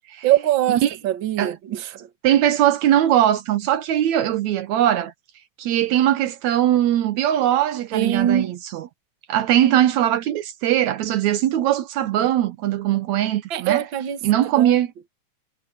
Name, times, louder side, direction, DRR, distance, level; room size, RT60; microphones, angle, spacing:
voice 1, 0.2-2.1 7.9-8.5 13.5-14.2 14.6-14.8, right 12 dB, 50° right, 1.8 m, -22 dB
voice 2, 2.2-5.1 5.6-8.9 9.3-13.8 14.2-14.9, right 12 dB, 75° right, 2.2 m, -20 dB
omnidirectional pair, 3.3 m